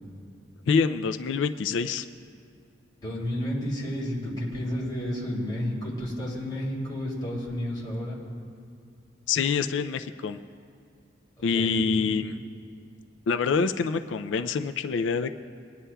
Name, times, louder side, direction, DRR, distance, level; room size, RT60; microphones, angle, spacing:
voice 1, 0.7-2.1 9.3-10.4 11.4-12.4 13.3-15.3, left 5 dB, 80° left, 9 dB, 0.4 m, -26 dB
voice 2, 3.0-8.2 11.5-12.2, equal, 25° left, -6 dB, 2.8 m, -31 dB
23.0 x 9.8 x 2.3 m, 2.3 s
head